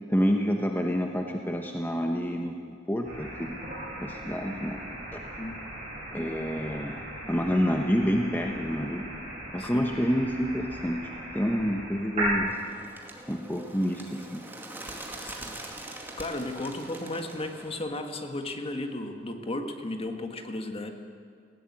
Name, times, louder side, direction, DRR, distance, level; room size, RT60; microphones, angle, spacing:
voice 1, 0.1-3.6 4.0-4.8 5.1-5.2 6.1-9.1 9.5-12.5 13.3-14.4, equal, 10° left, 2 dB, 1.0 m, -28 dB
sound 1, 3.0-12.4, right 1 dB, 35° right, 7.6 m, -37 dB
voice 2, 9.6-9.9 15.2-20.9, left 2 dB, 30° left, 5 dB, 1.6 m, -35 dB
Bird, 12.5-17.8, right 1 dB, 10° right, 2.1 m, -43 dB
18.5 x 16.5 x 8.7 m, 2.2 s
head